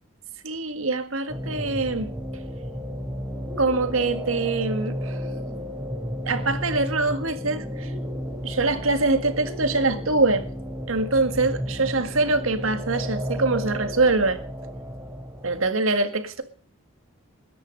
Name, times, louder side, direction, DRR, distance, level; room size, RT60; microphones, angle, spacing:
voice 1, 0.4-2.1 3.6-5.2 6.2-7.9 8.4-10.5 10.9-14.4 15.4-16.4, right 3 dB, 70° right, 1.9 m, -24 dB
sound 1, 1.3-15.7, equal, 15° right, 6.0 m, -33 dB
20.5 x 10.5 x 5.3 m
head